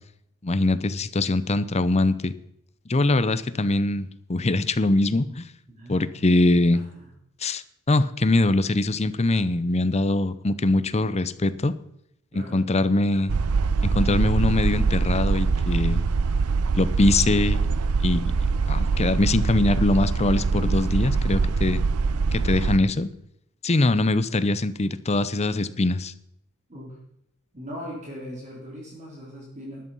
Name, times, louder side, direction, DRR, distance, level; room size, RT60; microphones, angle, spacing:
voice 1, 0.4-2.3 2.9-5.4 5.9-6.8 7.4-11.7 12.3-13.5 13.8-16.0 16.7-17.6 18.0-18.3 18.7-21.8 22.3-23.1 23.6-26.1, left 2 dB, 30° left, 14 dB, 0.7 m, -22 dB
voice 2, 5.7-6.1 6.7-7.0 12.3-12.6 20.5-20.9 26.7-26.9 27.5-29.8, equal, 35° right, -2 dB, 3.2 m, -39 dB
sound 1, 13.3-22.8, right 4 dB, 85° right, 0.6 m, -23 dB
13.0 x 11.0 x 5.5 m, 0.76 s
head